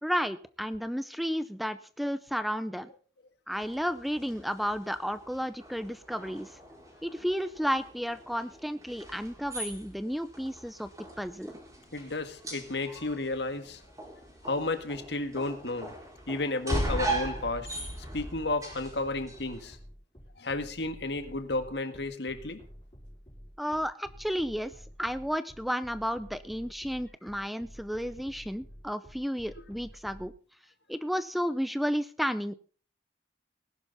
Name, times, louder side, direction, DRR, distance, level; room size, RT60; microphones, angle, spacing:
voice 1, 0.0-2.9 3.5-6.5 7.0-10.9 11.2-11.5 23.6-24.7 25.0-30.3 30.9-32.5, equal, ahead, 13 dB, 0.6 m, -32 dB
sound 1, 3.5-19.8, right 1 dB, 20° right, 5.0 m, -39 dB
voice 2, 11.9-13.8 14.4-15.9 16.3-17.7 18.1-19.8 20.4-22.6, left 2 dB, 70° left, 9 dB, 1.8 m, -32 dB
sound 2, 18.0-30.3, equal, 25° left, 5.3 m, -50 dB
19.0 x 11.0 x 4.1 m, 0.40 s
head